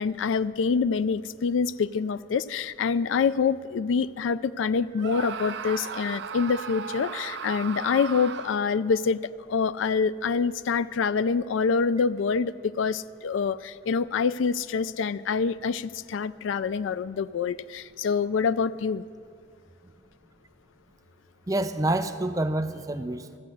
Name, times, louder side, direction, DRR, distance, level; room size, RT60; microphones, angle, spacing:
voice 1, 0.0-9.2 9.5-19.0, left 5 dB, 85° left, 16 dB, 0.4 m, -26 dB
Screaming, 5.0-8.8, right 6 dB, 65° right, 0.5 m, -36 dB
voice 2, 21.5-23.4, right 1 dB, 20° right, 10 dB, 0.4 m, -27 dB
14.0 x 8.3 x 7.7 m, 2.3 s
head